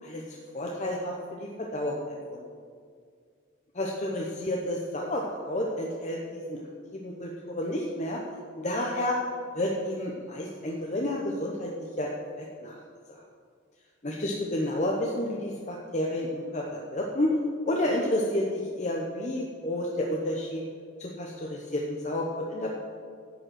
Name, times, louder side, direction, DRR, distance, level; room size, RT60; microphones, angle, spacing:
voice 1, 0.0-2.4 3.7-6.6 6.9-8.2 8.6-9.2 9.5-12.1 12.4-12.8 13.1-13.2 14.0-17.4 17.7-20.6 21.0-22.7, left 1 dB, 35° left, -1 dB, 0.8 m, -30 dB
11.0 x 5.3 x 7.8 m, 2.1 s
head